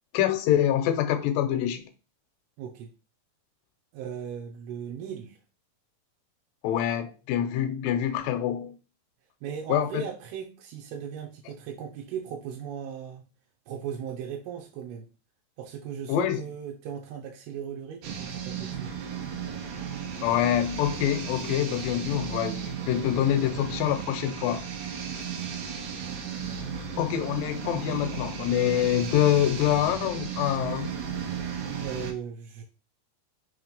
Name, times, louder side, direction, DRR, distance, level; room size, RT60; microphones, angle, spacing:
voice 1, 0.1-1.8 6.6-8.7 9.7-10.0 16.1-16.4 20.2-24.6 27.0-30.9, left 11 dB, 75° left, 2.2 m, -25 dB
voice 2, 2.6-2.9 3.9-5.4 9.4-13.2 13.7-15.1 15.6-18.9 31.8-32.6, right 8 dB, 90° right, 2.8 m, -37 dB
sound 1, 18.0-32.1, right 7 dB, 70° right, 2.1 m, -35 dB
5.9 x 3.2 x 5.1 m
omnidirectional pair, 4.5 m